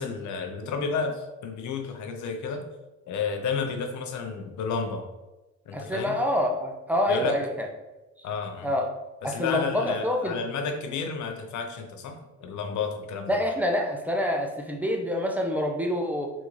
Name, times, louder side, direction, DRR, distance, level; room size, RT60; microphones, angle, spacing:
voice 1, 0.0-2.7 3.1-5.1 5.7-6.2 7.1-7.4 8.2-8.7 9.2-13.4, left 5 dB, 70° left, 5 dB, 0.6 m, -31 dB
voice 2, 5.7-7.7 8.6-8.9 9.2-10.4 13.3-16.3, left 1 dB, 5° right, 2 dB, 0.5 m, -26 dB
3.5 x 2.6 x 3.0 m, 1.1 s
cardioid pair, 90°, 30 cm